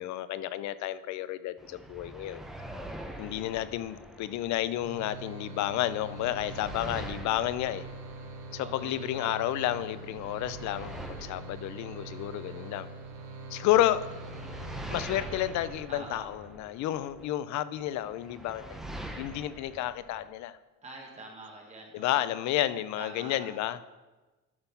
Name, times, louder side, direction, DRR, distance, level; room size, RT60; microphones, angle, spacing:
voice 1, 0.0-2.4 3.2-7.9 8.5-12.9 13.5-14.1 14.9-18.8 19.2-20.6 21.9-23.8, left 13 dB, 75° left, 15 dB, 0.5 m, -31 dB
sound 1, 1.6-5.2 5.6-9.2 9.6-13.3 13.7-17.3 17.8-20.3, right 1 dB, ahead, 0.7 m, -45 dB
sound 2, 4.8-16.1, right 2 dB, 80° right, 1.7 m, -44 dB
voice 2, 8.6-9.3 15.9-16.3 20.8-22.4 23.0-23.5, right 2 dB, 25° right, 0 dB, 1.1 m, -46 dB
12.0 x 4.1 x 5.6 m, 1.2 s
cardioid pair, 165°, 29 cm